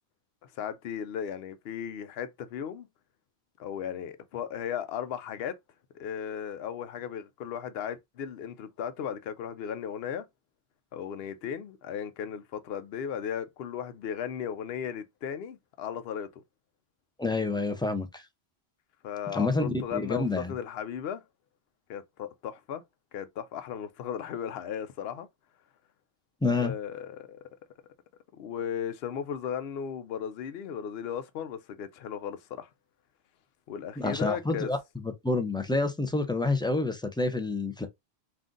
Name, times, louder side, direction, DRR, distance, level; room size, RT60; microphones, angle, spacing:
voice 1, 0.4-2.9 3.6-5.6 5.9-10.3 10.9-16.4 19.0-21.2 21.9-22.8 23.1-25.3 26.5-27.4 28.3-32.7 33.7-34.7, left 8 dB, 75° left, 0.8 m, -36 dB
voice 2, 17.2-18.2 19.3-20.5 26.4-26.7 34.0-37.9, left 2 dB, 10° left, 0.3 m, -28 dB
3.8 x 2.5 x 3.7 m
omnidirectional pair, 1.0 m